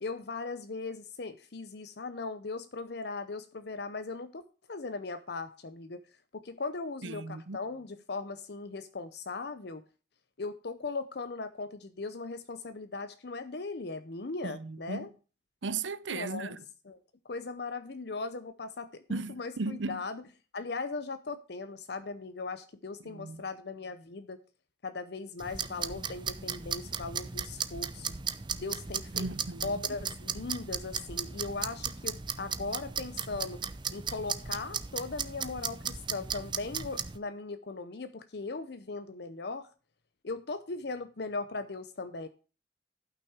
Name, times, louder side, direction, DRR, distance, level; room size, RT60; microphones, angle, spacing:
voice 1, 0.0-4.4 4.7-6.0 6.3-9.8 10.4-15.1 16.1-16.6 16.9-17.0 17.2-20.2 20.5-24.4 24.8-28.1 28.6-29.3 29.6-33.6 33.9-39.7 40.2-42.3, left 3 dB, 60° left, 0.7 m, -38 dB
voice 2, 7.0-7.6 14.4-15.1 15.6-16.6 19.1-20.0 23.0-23.4 29.1-29.8, right 3 dB, 80° right, 0.7 m, -36 dB
sound 1, 25.4-37.2, right 6 dB, 25° right, 0.6 m, -36 dB
12.5 x 5.9 x 4.6 m
head